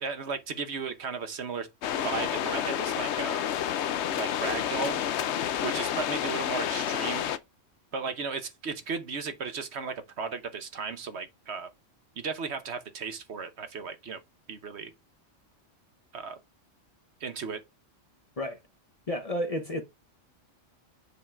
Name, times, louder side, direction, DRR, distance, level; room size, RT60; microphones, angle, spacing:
voice 1, 0.0-1.7 2.0-3.4 4.2-5.0 5.6-7.3 7.9-11.7 12.2-14.2 14.5-14.9 16.1-16.4 17.2-17.6, right 5 dB, 60° right, 1.1 m, -35 dB
sound 1, 1.8-7.4, left 10 dB, 65° left, 0.9 m, -29 dB
voice 2, 19.1-19.8, equal, 35° left, 0.7 m, -31 dB
7.1 x 3.7 x 4.4 m
omnidirectional pair, 1.3 m